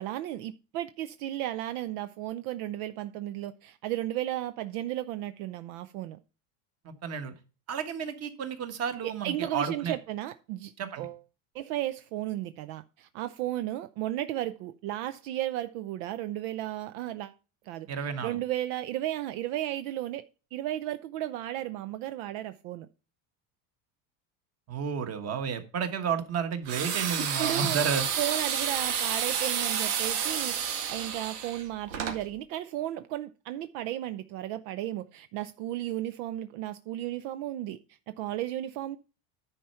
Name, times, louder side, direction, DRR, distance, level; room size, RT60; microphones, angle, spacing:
voice 1, 0.0-6.2 9.0-11.2 11.5-17.3 17.7-17.9 18.2-20.2 20.5-22.9 27.2-27.8 28.2-37.8 38.1-39.0, right 13 dB, 70° right, 0.6 m, -34 dB
voice 2, 6.8-7.3 7.7-9.9 10.8-11.1 17.9-18.4 24.7-28.0, right 6 dB, 35° right, 1.4 m, -32 dB
sound 1, 26.7-32.2, right 8 dB, 85° right, 2.0 m, -30 dB
10.0 x 4.5 x 5.6 m
cardioid pair, 145°, 46 cm